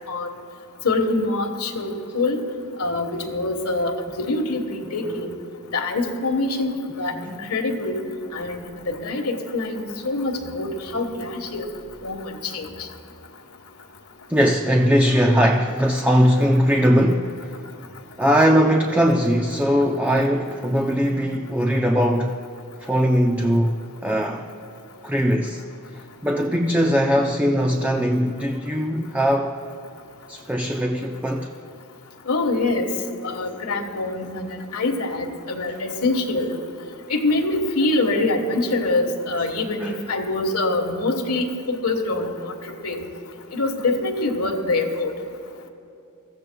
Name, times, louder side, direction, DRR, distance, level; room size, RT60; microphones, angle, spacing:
voice 1, 0.8-2.4 2.8-5.3 5.7-8.0 8.3-11.7 12.0-12.9 32.3-32.9 33.2-36.6 37.1-42.5 42.8-43.0 43.5-45.1, left 2 dB, 80° left, 1.4 m, -25 dB
voice 2, 14.3-17.5 18.2-22.4 22.8-24.5 25.0-25.6 26.2-29.6 30.3-31.5 39.8-39.9, equal, 5° right, 0.5 m, -20 dB
23.5 x 15.0 x 2.3 m
head